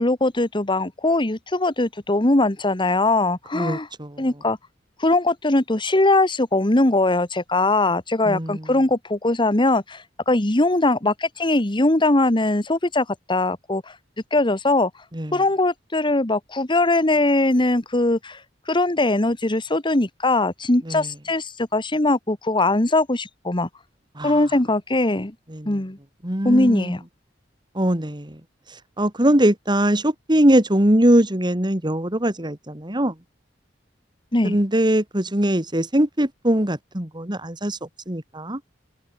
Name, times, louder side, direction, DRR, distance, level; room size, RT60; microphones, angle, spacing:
voice 1, 0.0-3.9 4.2-4.6 5.0-13.8 14.3-14.9 15.3-18.4 18.7-23.7 24.2-25.3 25.6-26.0 26.4-27.0 34.3-34.6, left 2 dB, 25° left, 1.6 m, -21 dB
voice 2, 3.5-4.3 8.2-8.7 15.1-15.4 20.9-21.1 24.1-24.4 25.5-25.8 26.2-27.0 27.7-28.4 28.7-33.1 34.4-37.8 38.1-38.6, right 1 dB, 25° right, 3.1 m, -21 dB
head